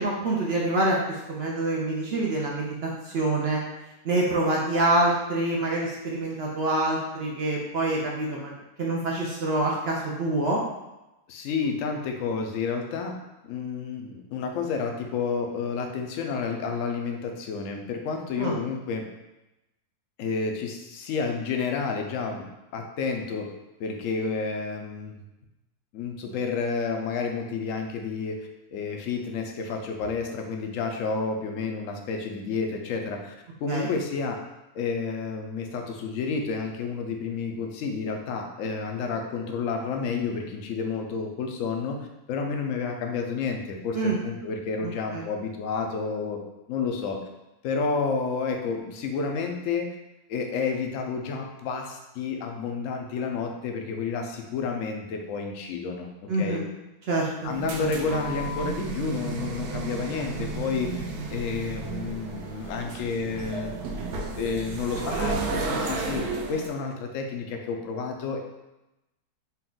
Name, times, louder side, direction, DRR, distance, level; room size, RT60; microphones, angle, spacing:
voice 1, 0.0-3.6 4.0-8.5 8.8-10.6 18.4-18.5 33.7-33.9 43.9-44.2 44.8-45.2 56.3-56.7 57.1-57.5 57.8-57.9, right 2 dB, 60° right, -3 dB, 0.6 m, -26 dB
voice 2, 11.3-13.1 13.4-19.1 20.2-22.5 22.7-23.5 23.8-25.1 25.9-33.3 33.6-34.4 34.7-46.4 46.7-47.2 47.6-49.9 50.3-56.1 56.4-56.6 57.4-61.0 61.3-63.7 64.4-68.4, left 5 dB, 70° left, 3 dB, 0.8 m, -30 dB
sound 1, 57.4-66.7, right 3 dB, 85° right, 1.2 m, -33 dB
4.2 x 2.3 x 3.8 m, 0.96 s
omnidirectional pair, 1.6 m